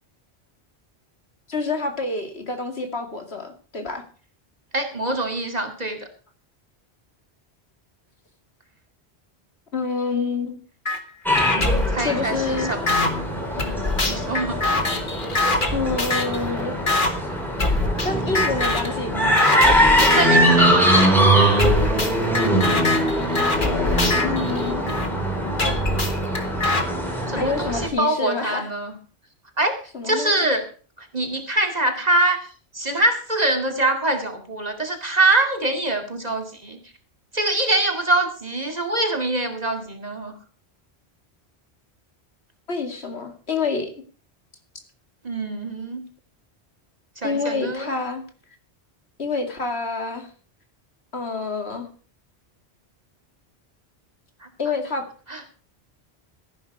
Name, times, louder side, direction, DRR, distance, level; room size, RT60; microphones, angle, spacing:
voice 1, 1.5-4.0 9.7-10.6 12.0-12.7 15.7-16.7 18.0-19.3 23.6-24.8 27.3-28.7 29.9-30.3 42.7-43.9 47.2-48.2 49.2-50.3 51.1-51.9 54.6-55.0, left 4 dB, 70° left, 5 dB, 2.6 m, -27 dB
voice 2, 4.7-6.1 11.5-12.8 13.6-14.6 20.0-21.1 27.3-29.0 29.6-29.8 30.0-30.7 31.0-32.4 32.7-36.8 37.3-40.3 45.2-46.0 47.2-47.9 54.4-54.5 55.3-55.4, right 2 dB, 40° right, 4 dB, 2.4 m, -24 dB
sound 1, 10.9-11.0 11.4-13.1 13.6-16.4 16.9-17.1 17.6-18.1 18.4-18.9 19.4-20.4 20.9-21.1 21.6-25.1 25.6-26.8, left 2 dB, 50° left, 2.0 m, -23 dB
sound 2, 11.3-27.9, right 1 dB, ahead, 3.9 m, -22 dB
14.0 x 11.0 x 4.8 m, 0.40 s
omnidirectional pair, 1.1 m